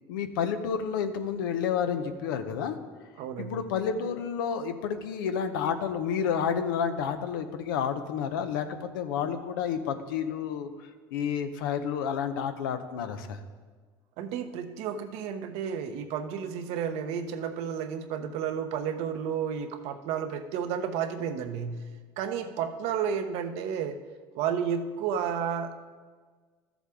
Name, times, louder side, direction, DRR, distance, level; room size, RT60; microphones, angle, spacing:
voice 1, 0.1-2.8 3.4-10.7 11.1-13.4, left 7 dB, 90° left, 8 dB, 0.7 m, -30 dB
voice 2, 3.2-3.6 14.2-21.8 22.2-24.0 24.3-25.7, right 7 dB, 70° right, 7 dB, 0.8 m, -32 dB
13.5 x 7.1 x 3.6 m, 1.5 s
supercardioid pair, 85°, 11 cm